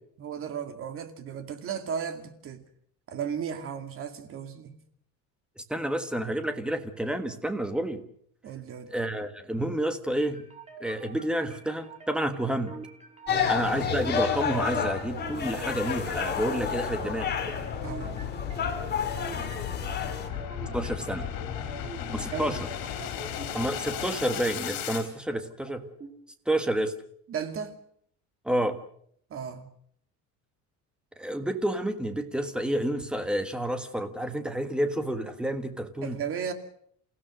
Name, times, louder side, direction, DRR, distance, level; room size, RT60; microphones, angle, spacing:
voice 1, 0.2-2.6 3.1-4.8 8.4-8.9 13.3-13.6 17.8-18.1 22.3-22.5 27.3-27.8 29.3-29.7 36.0-36.5, right 7 dB, 40° right, 7 dB, 2.4 m, -35 dB
voice 2, 5.6-8.0 8.9-10.4 10.8-12.8 13.5-17.3 20.7-21.3 22.1-22.6 23.5-25.9 26.5-26.9 28.4-28.8 31.2-36.2, right 1 dB, 5° right, 8 dB, 1.5 m, -29 dB
sound 1, 10.2-26.2, right 2 dB, 20° right, 4.2 m, -45 dB
sound 2, 13.3-20.3, left 7 dB, 30° left, 2.8 m, -30 dB
sound 3, 14.3-25.1, left 9 dB, 75° left, 4.2 m, -37 dB
29.0 x 16.0 x 6.3 m, 0.66 s
cardioid pair, 160°, 34 cm